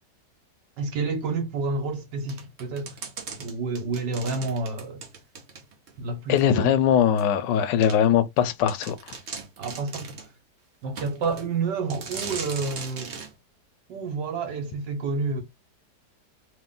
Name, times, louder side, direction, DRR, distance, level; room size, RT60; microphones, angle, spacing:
voice 1, 0.8-2.9 3.4-5.0 6.0-6.8 9.6-10.2 10.8-13.1 13.9-15.4, right 4 dB, 80° right, 1.6 m, -29 dB
sound 1, 2.3-5.9 6.4-6.5 7.2-7.3 7.8-8.0 8.4-8.5 8.7-10.3 11.0-11.5 11.9-13.3, right 4 dB, 50° right, 1.0 m, -38 dB
voice 2, 6.3-8.9, left 9 dB, 85° left, 1.3 m, -21 dB
3.0 x 3.0 x 3.7 m
omnidirectional pair, 1.8 m